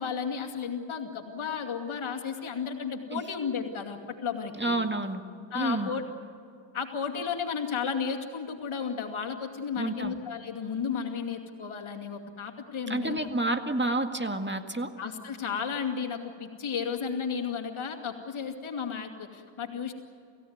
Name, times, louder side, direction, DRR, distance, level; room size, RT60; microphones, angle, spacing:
voice 1, 0.0-4.7 5.5-6.0 6.7-13.2 15.0-19.9, left 6 dB, 85° left, 4 dB, 2.5 m, -33 dB
voice 2, 4.6-5.2 5.5-5.9 9.8-10.1 12.9-14.9, right 2 dB, 25° right, 6 dB, 2.0 m, -29 dB
28.5 x 16.5 x 9.5 m, 2.4 s
cardioid pair, 50°, 47 cm